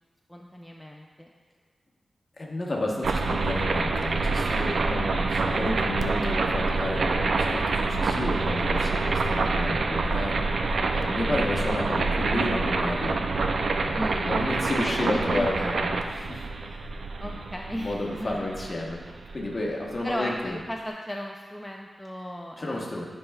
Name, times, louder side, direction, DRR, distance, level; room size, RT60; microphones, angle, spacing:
voice 1, 0.3-1.3 13.9-14.5 14.8-15.7 17.2-18.5 20.0-23.0, equal, 5° left, 0 dB, 0.4 m, -35 dB
voice 2, 2.4-10.5 10.9-13.2 13.8-16.9 17.2-17.4 17.7-19.0 19.3-20.6 22.6-23.0, left 1 dB, 35° left, -2 dB, 1.1 m, -31 dB
sound 1, 3.0-19.9, right 3 dB, 75° right, 0.4 m, -27 dB
10.5 x 5.4 x 2.3 m, 1.5 s
wide cardioid pair, 115°, 0 cm